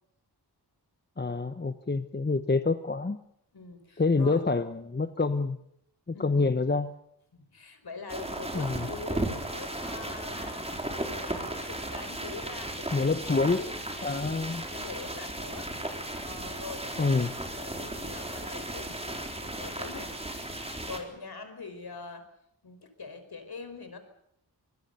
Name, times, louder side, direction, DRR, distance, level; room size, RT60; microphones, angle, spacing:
voice 1, 1.2-3.2 4.0-5.6 6.1-6.9 8.5-8.9 12.9-13.6 14.0-14.6 17.0-17.3, left 3 dB, 25° left, 10 dB, 1.0 m, -27 dB
voice 2, 3.5-4.4 6.1-6.6 7.3-13.8 14.7-15.7 16.2-16.9 17.5-20.1 20.9-22.3 22.6-24.0, left 4 dB, 65° left, 8 dB, 5.0 m, -44 dB
sound 1, 8.1-21.0, right 1 dB, 15° right, 4.1 m, -36 dB
25.5 x 21.5 x 6.9 m, 0.75 s
wide cardioid pair, 95°, 41 cm